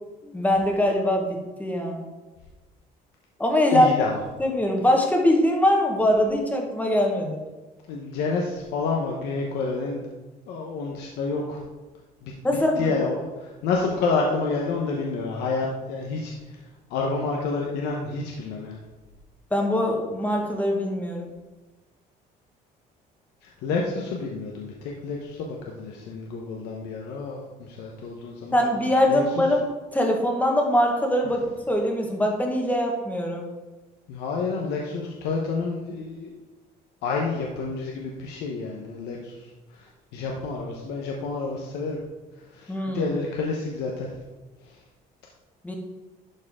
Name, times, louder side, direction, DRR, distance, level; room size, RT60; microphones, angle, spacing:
voice 1, 0.2-2.0 3.4-3.9 4.4-7.4 12.4-12.9 19.5-21.3 28.5-29.6 29.9-33.4 42.7-43.1 45.6-45.7, left 1 dB, 10° left, 1 dB, 1.5 m, -22 dB
voice 2, 3.7-4.2 7.9-10.1 10.5-11.6 12.2-12.3 12.8-16.3 16.9-18.8 23.4-28.6 29.1-29.4 34.1-36.3 37.0-39.3 39.7-42.0 42.5-44.1, left 4 dB, 90° left, -1 dB, 1.0 m, -29 dB
11.5 x 4.3 x 3.7 m, 1.2 s
cardioid pair, 110°, 17 cm